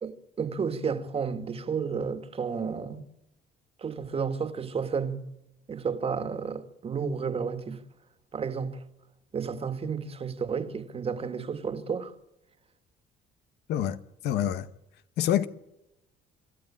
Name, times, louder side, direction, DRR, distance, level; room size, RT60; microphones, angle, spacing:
voice 1, 0.0-3.0 3.8-5.2 5.7-7.8 8.3-8.8 9.3-12.1, right 6 dB, 35° right, 2.0 m, -32 dB
voice 2, 14.2-14.7 15.2-15.4, left 11 dB, 75° left, 1.2 m, -26 dB
26.5 x 13.0 x 8.7 m
cardioid pair, 110°, 17 cm